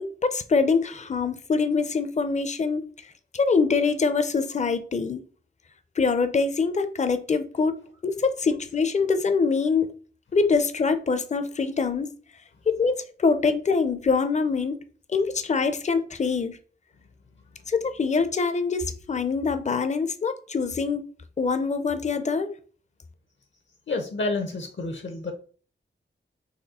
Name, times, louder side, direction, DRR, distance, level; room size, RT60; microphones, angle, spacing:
voice 1, 0.0-2.8 3.3-5.2 6.0-7.7 8.0-9.9 10.3-12.1 12.7-14.8 15.1-16.6 17.7-21.0 21.4-22.5, left 4 dB, 35° left, 0.5 m, -24 dB
voice 2, 23.9-25.3, left 3 dB, 65° left, 0.8 m, -29 dB
4.2 x 3.1 x 4.1 m
wide cardioid pair, 100°, 20 cm